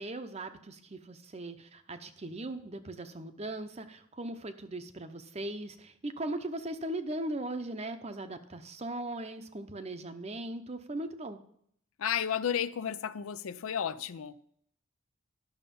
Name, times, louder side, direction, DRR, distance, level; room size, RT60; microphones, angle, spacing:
voice 1, 0.0-11.4, right 1 dB, 30° right, 0.7 m, -39 dB
voice 2, 12.0-14.4, left 8 dB, 75° left, 0.5 m, -32 dB
11.5 x 6.7 x 5.3 m
head